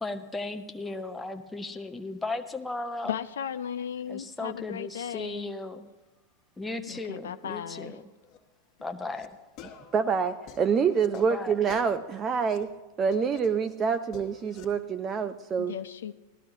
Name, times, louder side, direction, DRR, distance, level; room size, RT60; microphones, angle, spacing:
voice 1, 0.0-3.2 4.1-5.9 6.6-8.0 8.8-9.3 11.1-11.6, left 2 dB, 10° left, 6 dB, 0.8 m, -36 dB
voice 2, 3.0-5.5 6.9-8.0 15.6-16.1, left 9 dB, 65° left, 11 dB, 0.4 m, -36 dB
sound 1, 8.2-8.4 8.9-9.3 9.6-12.6 13.1-14.7, left 7 dB, 40° left, 1.5 m, -50 dB
voice 3, 9.9-12.7 13.0-15.7, right 6 dB, 25° right, 9 dB, 0.5 m, -26 dB
18.0 x 13.0 x 2.7 m, 1.2 s
figure-of-eight pair, 90°, 0 cm